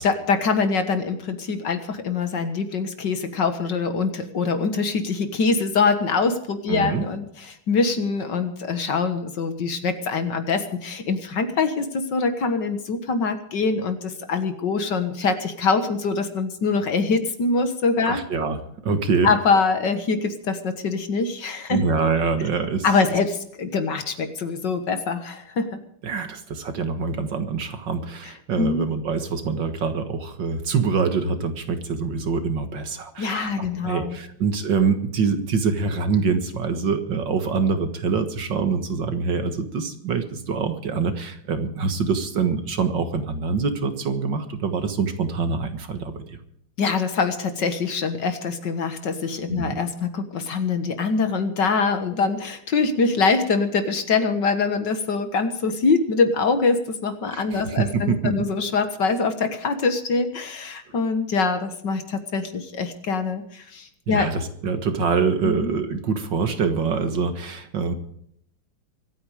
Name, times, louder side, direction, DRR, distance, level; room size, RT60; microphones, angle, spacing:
voice 1, 0.0-18.2 19.2-21.8 22.8-25.8 28.6-28.9 33.2-34.2 46.8-64.3 65.4-65.7, left 4 dB, 55° left, 9 dB, 2.0 m, -24 dB
voice 2, 6.7-7.0 18.1-19.3 21.7-22.9 26.0-46.4 49.5-49.8 57.3-58.5 64.1-67.9, right 5 dB, 60° right, 8 dB, 2.1 m, -25 dB
24.5 x 9.3 x 4.9 m, 0.70 s
omnidirectional pair, 2.4 m